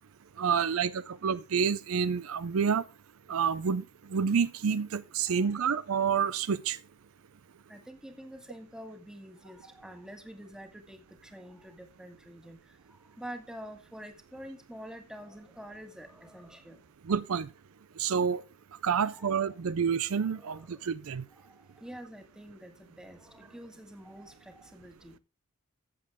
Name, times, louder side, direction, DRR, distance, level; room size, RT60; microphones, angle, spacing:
voice 1, 0.4-2.8 3.3-3.8 4.1-6.8 17.1-17.5 18.0-18.4 18.8-21.2, right 6 dB, 65° right, 0.5 m, -28 dB
voice 2, 7.7-12.8 13.2-16.8 19.0-19.4 20.2-20.8 21.3-25.2, equal, 5° right, 1.7 m, -47 dB
14.5 x 7.6 x 3.6 m
head